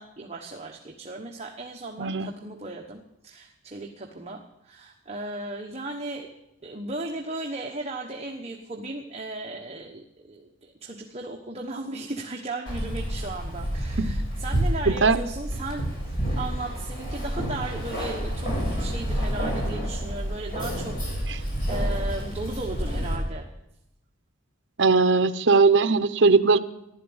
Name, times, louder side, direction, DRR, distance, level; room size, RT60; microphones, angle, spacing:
voice 1, 0.0-6.3 6.6-15.9 16.4-23.5, right 2 dB, 30° right, 1 dB, 1.2 m, -36 dB
voice 2, 2.0-2.3 14.0-14.1 14.9-15.2 24.8-26.6, right 4 dB, 65° right, 8 dB, 0.7 m, -19 dB
Keys jangling, 12.7-23.2, equal, 45° left, 7.1 m, -29 dB
15.0 x 12.0 x 8.0 m, 0.86 s
head